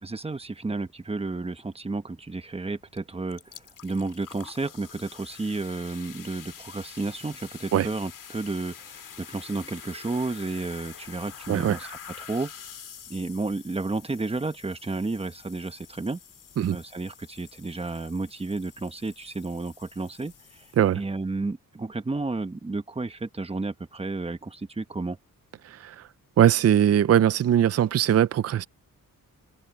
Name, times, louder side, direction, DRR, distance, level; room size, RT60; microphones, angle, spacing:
voice 1, 0.0-11.9 12.2-12.5 13.1-16.2 16.7-20.7 20.9-25.2, right 3 dB, 15° right, 1.1 m, -32 dB
sound 1, 2.9-3.0 3.3-21.0, left 8 dB, 65° left, 2.4 m, -47 dB
voice 2, 11.5-11.8 16.6-16.8 20.8-21.0 25.6-26.1 26.4-28.7, right 10 dB, 45° right, 0.5 m, -21 dB
wide cardioid pair, 115°, 35 cm